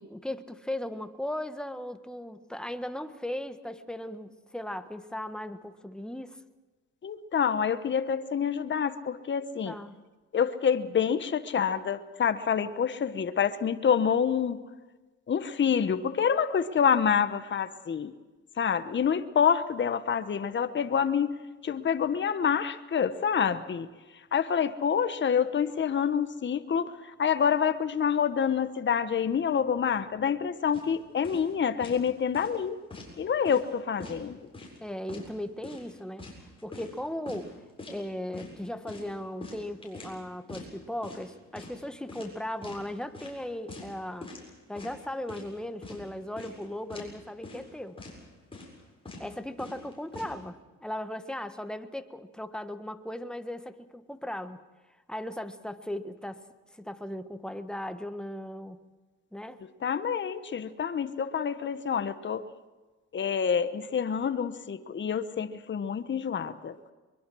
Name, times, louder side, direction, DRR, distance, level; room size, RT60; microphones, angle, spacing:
voice 1, 0.0-6.4 9.6-10.0 34.8-37.6 37.9-44.3 44.7-48.0 49.2-54.6 55.1-58.8 59.3-59.6, left 1 dB, 5° left, 9 dB, 1.4 m, -37 dB
voice 2, 7.0-9.8 10.3-14.6 15.3-18.1 18.6-23.9 24.1-32.8 33.2-34.4 59.8-62.4 63.1-66.7, left 7 dB, 40° left, 11 dB, 1.1 m, -27 dB
sound 1, 30.7-30.9 31.2-31.5 31.8-32.1 32.3-33.1 33.4-33.7 34.0-34.8 35.1-35.3 35.6-37.0 37.3-37.4 37.8-38.0 38.3-38.5 38.9-40.2 40.5-40.7 41.0-41.3 41.5-41.8 42.1-42.8 43.1-43.4 43.7-43.9 44.2-44.5 44.8-45.5 45.8-46.0 46.4-46.6 46.9-47.1 47.4-47.7 48.0-48.2 48.5-48.8 49.0-49.3 49.6-50.3, left 2 dB, 20° left, 7.4 m, -44 dB
23.0 x 22.5 x 6.3 m, 1.2 s
cardioid pair, 90°, 30 cm